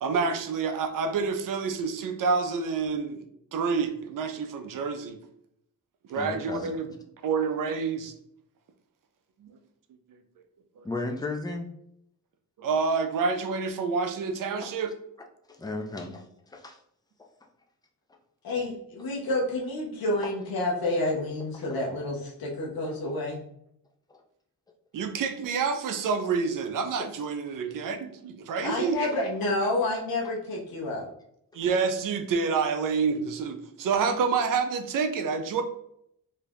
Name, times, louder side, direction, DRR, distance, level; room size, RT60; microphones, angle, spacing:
voice 1, 0.0-3.2 3.5-5.2 6.1-6.9 7.2-8.1 9.4-9.5 12.6-14.9 24.9-29.0 31.5-35.6, right 5 dB, 65° right, 7 dB, 0.5 m, -28 dB
voice 2, 6.1-6.7 10.8-11.7 15.5-16.8 17.2-17.3 20.2-20.3 24.1-24.2 28.6-28.8, left 2 dB, 10° left, 3 dB, 0.4 m, -35 dB
voice 3, 18.4-23.4 28.6-31.1, left 2 dB, 80° left, -2 dB, 0.8 m, -29 dB
2.7 x 2.3 x 3.4 m, 0.73 s
cardioid pair, 95°, 35 cm